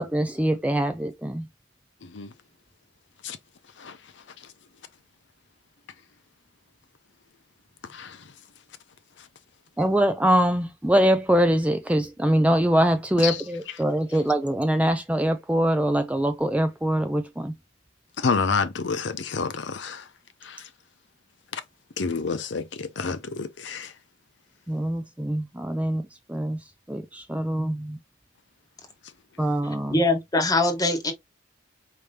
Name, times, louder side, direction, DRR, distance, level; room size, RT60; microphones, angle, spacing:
voice 1, 0.0-1.4 9.8-17.5 24.7-26.0 26.3-26.6 26.9-28.0 29.4-30.0, right 1 dB, 5° right, 0.4 m, -23 dB
voice 2, 2.0-2.3 3.2-3.4 3.8-4.0 7.9-8.2 13.2-13.4 18.2-20.1 20.4-20.7 21.5-21.6 22.0-23.9, left 5 dB, 65° left, 0.6 m, -29 dB
voice 3, 29.9-31.1, left 2 dB, 20° left, 1.1 m, -22 dB
5.0 x 2.7 x 3.3 m
head